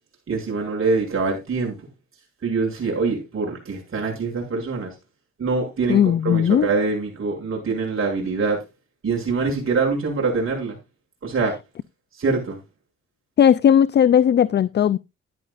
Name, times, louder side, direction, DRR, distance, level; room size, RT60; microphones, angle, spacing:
voice 1, 0.3-1.8 2.4-4.9 5.4-8.6 9.0-10.8 11.2-11.5 12.2-12.6, right 4 dB, 45° right, 7.1 m, -24 dB
voice 2, 5.9-6.7 13.4-15.0, left 9 dB, 35° left, 0.4 m, -17 dB
13.0 x 11.0 x 2.5 m
cardioid pair, 90°, 30 cm